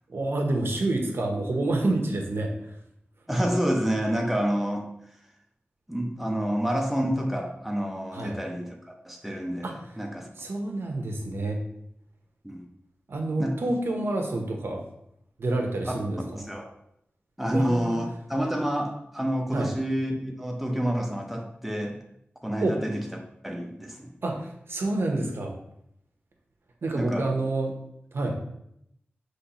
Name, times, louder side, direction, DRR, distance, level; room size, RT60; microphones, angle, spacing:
voice 1, 0.1-2.7 8.1-8.4 9.6-9.7 10.4-11.6 13.1-14.8 15.4-16.4 17.5-18.0 19.5-19.7 22.6-22.8 24.2-25.5 26.8-27.7 28.1-28.4, right 2 dB, 70° right, 2 dB, 0.8 m, -28 dB
voice 2, 3.3-4.9 5.9-8.7 9.0-10.3 12.4-12.7 13.4-13.6 15.9-16.0 16.4-16.7 17.4-22.0 22.4-24.1 26.9-27.3, equal, 5° right, 1 dB, 0.7 m, -28 dB
5.6 x 3.1 x 3.0 m, 0.75 s
wide cardioid pair, 90°, 4 cm